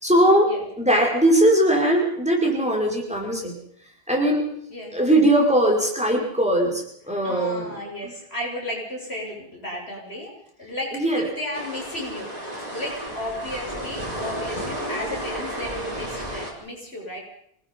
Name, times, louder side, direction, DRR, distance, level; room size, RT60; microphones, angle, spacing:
voice 1, 0.0-3.6 4.1-4.5 4.9-7.8 8.0-8.1 10.9-11.3, right 1 dB, 5° right, -1 dB, 5.6 m, -20 dB
voice 2, 7.2-17.2, left 1 dB, 80° left, -1 dB, 7.1 m, -34 dB
sound 1, 11.5-16.5, right 1 dB, 40° right, 6.1 m, -32 dB
26.0 x 20.0 x 5.6 m, 0.68 s
omnidirectional pair, 1.1 m